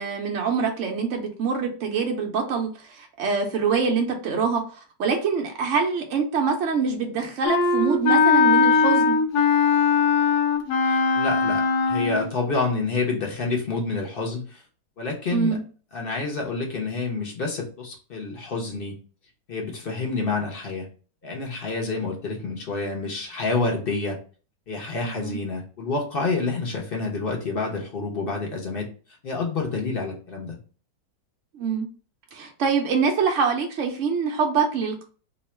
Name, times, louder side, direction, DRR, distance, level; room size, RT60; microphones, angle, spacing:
voice 1, 0.0-4.6 5.0-9.2 15.3-15.6 25.0-25.4 31.5-31.9 32.3-35.0, right 5 dB, 65° right, 2 dB, 0.7 m, -25 dB
Wind instrument woodwind instrument, 7.4-12.3, left 5 dB, 70° left, 1.1 m, -20 dB
voice 2, 10.8-14.6 15.0-15.6 15.9-19.0 19.5-20.9 21.2-24.2 24.7-28.9 29.2-30.6, left 3 dB, 50° left, 0 dB, 0.7 m, -28 dB
2.9 x 2.3 x 4.2 m, 0.38 s
omnidirectional pair, 1.9 m